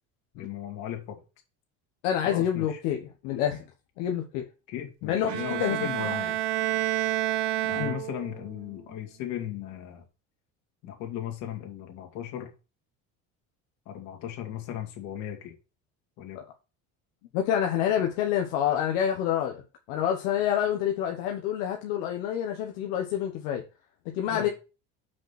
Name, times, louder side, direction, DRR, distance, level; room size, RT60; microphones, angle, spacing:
voice 1, 0.3-1.2 2.2-2.8 4.7-6.4 7.6-10.0 10.8-12.5 13.9-15.5 16.2-16.4 24.3-24.5, left 10 dB, 65° left, 2.8 m, -37 dB
voice 2, 2.0-3.6 4.0-4.4 5.0-6.1 7.8-8.0 16.3-16.4 17.3-19.6 19.9-23.6 24.0-24.5, left 10 dB, 85° left, 1.2 m, -28 dB
Bowed string instrument, 5.3-8.4, right 14 dB, 65° right, 0.9 m, -29 dB
6.1 x 5.3 x 5.8 m
cardioid pair, 130°, 30 cm